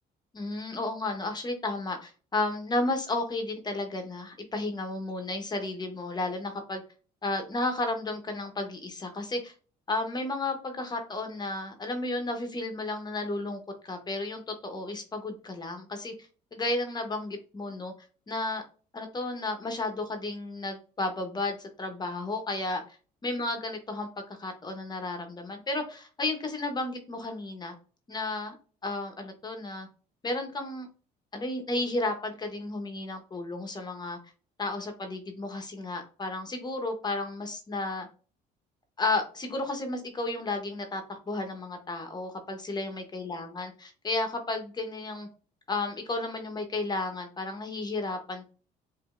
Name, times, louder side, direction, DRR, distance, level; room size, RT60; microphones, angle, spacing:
voice 1, 0.3-6.8 7.2-9.5 9.9-16.1 16.5-17.9 18.3-18.6 18.9-22.8 23.2-27.7 28.1-28.5 28.8-29.9 30.2-30.9 31.3-34.2 34.6-38.1 39.0-45.3 45.7-48.5, left 2 dB, 25° left, 5 dB, 0.9 m, -33 dB
5.0 x 2.6 x 2.4 m, 0.37 s
cardioid pair, 110°, 17 cm